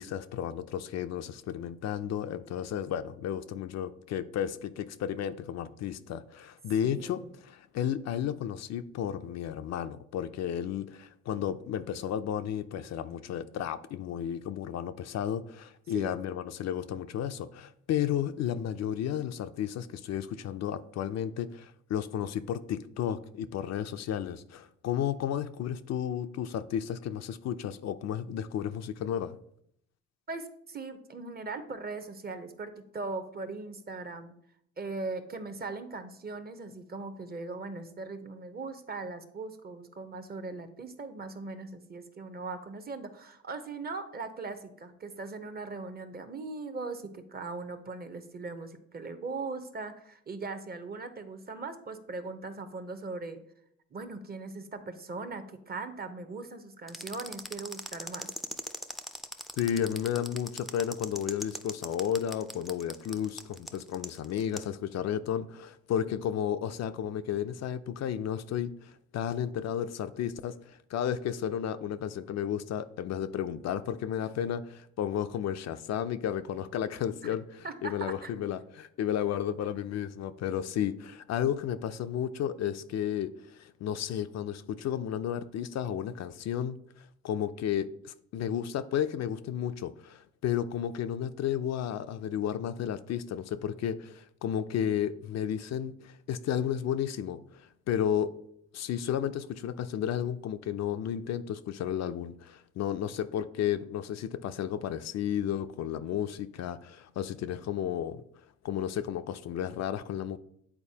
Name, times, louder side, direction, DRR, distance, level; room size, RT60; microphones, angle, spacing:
voice 1, 0.0-29.4 59.6-98.3 98.7-108.2 108.6-110.4, left 9 dB, 60° left, 0.4 m, -33 dB
voice 2, 6.8-7.3 15.9-16.2 30.3-34.3 34.8-53.4 53.9-58.3 77.2-77.3 77.6-78.3, right 3 dB, 30° right, 0.7 m, -39 dB
sound 1, 56.9-64.7, equal, ahead, 0.4 m, -40 dB
8.8 x 4.1 x 2.8 m
cardioid pair, 90°, 30 cm